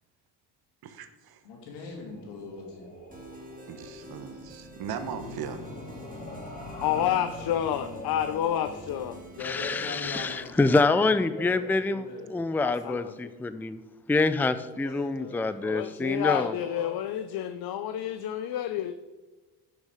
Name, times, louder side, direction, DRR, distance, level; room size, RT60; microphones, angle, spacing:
voice 1, 0.9-1.4 3.7-5.6, right 8 dB, 65° right, 10 dB, 1.1 m, -38 dB
voice 2, 1.4-2.9 9.3-11.0 11.3-12.3 14.8-15.7 16.6-16.9, left 4 dB, 85° left, 0 dB, 2.9 m, -41 dB
sound 1, 1.8-10.7, left 1 dB, 20° left, 3.5 m, -44 dB
sound 2, 3.1-10.5, equal, 20° right, 2.3 m, -47 dB
voice 3, 6.8-9.2 12.6-13.3 15.6-18.9, left 10 dB, 65° left, 10 dB, 0.7 m, -29 dB
voice 4, 9.4-12.0 12.3-13.8 14.1-16.5, left 3 dB, 5° left, 12 dB, 0.4 m, -26 dB
10.5 x 6.7 x 5.0 m, 1.2 s
cardioid pair, 80°, 40 cm